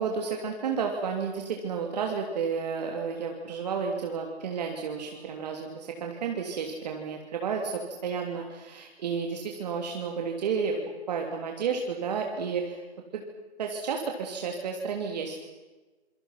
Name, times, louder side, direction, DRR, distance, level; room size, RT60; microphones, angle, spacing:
voice 1, 0.0-10.8 11.1-12.8 13.1-13.2 13.6-15.3, right 6 dB, 35° right, 2 dB, 3.2 m, -31 dB
28.0 x 26.0 x 5.9 m, 1.2 s
hypercardioid pair, 170°, 34 cm